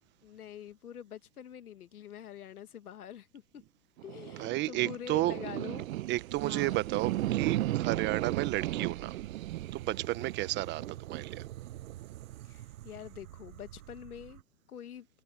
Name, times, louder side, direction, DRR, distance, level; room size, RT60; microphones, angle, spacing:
voice 1, 0.2-3.6 4.0-5.9 6.5-6.8 12.4-14.4 14.7-15.1, left 9 dB, 90° left, 2.1 m, -45 dB
sound 1, 4.0-14.4, right 15 dB, 65° right, 0.8 m, -36 dB
voice 2, 4.4-5.4 6.1-9.1 9.7-11.4, right 17 dB, 25° right, 1.1 m, -32 dB
hypercardioid pair, 135°, 43 cm